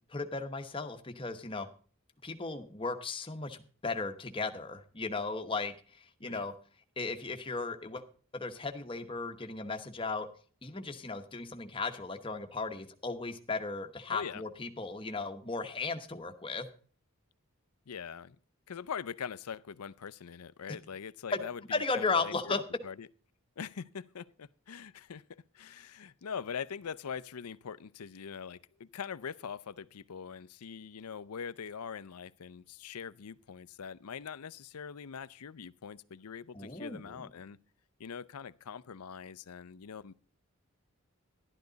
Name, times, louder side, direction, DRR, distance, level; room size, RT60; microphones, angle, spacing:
voice 1, 0.1-1.7 2.2-6.5 7.0-8.0 8.3-10.3 10.6-16.7 21.3-21.4 21.7-22.6 36.5-37.2, left 3 dB, 25° left, 1.0 m, -36 dB
voice 2, 14.1-14.4 17.9-18.4 18.7-22.6 22.8-23.1 23.6-37.6 38.0-40.1, left 7 dB, 90° left, 0.5 m, -43 dB
12.0 x 12.0 x 3.9 m
head